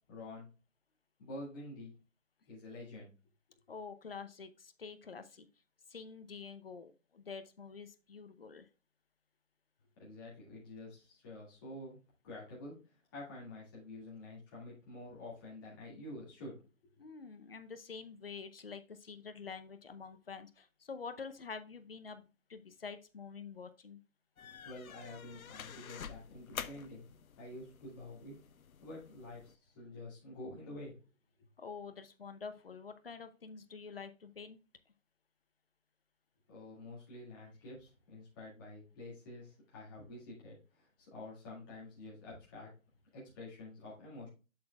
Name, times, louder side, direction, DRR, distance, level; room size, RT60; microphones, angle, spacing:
voice 1, 0.1-0.5 1.2-1.9 2.5-3.1 10.0-12.0 12.2-16.6 24.6-28.4 28.8-31.0 36.5-42.7 43.1-44.3, left 2 dB, 15° left, -7 dB, 2.0 m, -48 dB
voice 2, 3.7-5.5 5.9-8.7 17.0-24.0 31.6-34.6, left 5 dB, 45° left, 10 dB, 0.7 m, -47 dB
sound 1, 24.4-29.5, left 8 dB, 80° left, 0.7 m, -49 dB
7.8 x 7.0 x 2.3 m, 0.31 s
hypercardioid pair, 170°, 41 cm